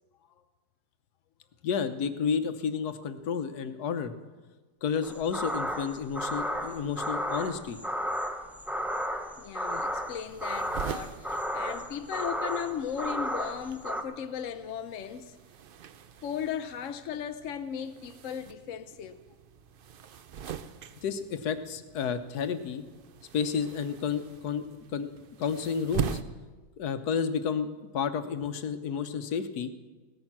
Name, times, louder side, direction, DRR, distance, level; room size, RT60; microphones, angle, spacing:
voice 1, 1.6-4.1 4.8-7.8 21.0-22.8 23.3-24.6 24.9-25.1 25.4-26.2 26.8-27.7 27.9-29.7, left 6 dB, 90° left, 1.4 m, -31 dB
sound 1, 5.0-14.0, equal, ahead, 0.4 m, -33 dB
voice 2, 9.4-15.4 16.2-19.2, left 8 dB, 65° left, 0.9 m, -36 dB
sound 2, 9.7-26.2, right 8 dB, 70° right, 0.5 m, -42 dB
17.0 x 13.5 x 6.0 m
omnidirectional pair, 1.6 m